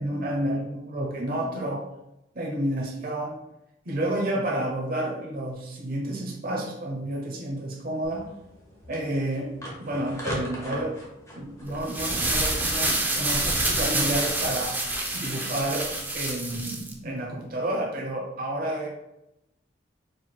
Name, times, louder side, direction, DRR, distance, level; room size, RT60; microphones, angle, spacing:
voice 1, 0.0-1.8 2.3-3.4 3.9-8.3 8.9-9.5 9.8-11.0 11.4-14.8 15.1-18.9, right 1 dB, 50° right, -1 dB, 0.8 m, -30 dB
sound 1, 8.0-15.9, equal, 15° left, 1.1 m, -41 dB
sound 2, 11.7-16.9, right 2 dB, 10° right, 0.6 m, -27 dB
4.7 x 4.3 x 2.2 m, 0.88 s
head